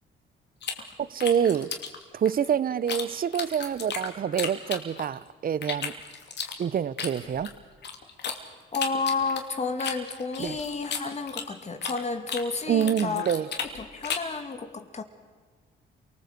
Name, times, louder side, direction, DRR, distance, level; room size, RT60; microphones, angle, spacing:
sound 1, 0.6-3.0 3.3-5.2 5.6-8.4 8.7-12.0 12.3-14.4, left 6 dB, 60° left, 3.0 m, -34 dB
voice 1, 1.0-1.7 2.1-5.9 6.6-7.5 10.4-10.6 12.7-13.5, right 8 dB, 45° right, 0.8 m, -26 dB
voice 2, 8.7-13.3 13.8-15.0, left 4 dB, 35° left, 2.4 m, -31 dB
28.0 x 19.5 x 8.1 m
cardioid pair, 90°, 20 cm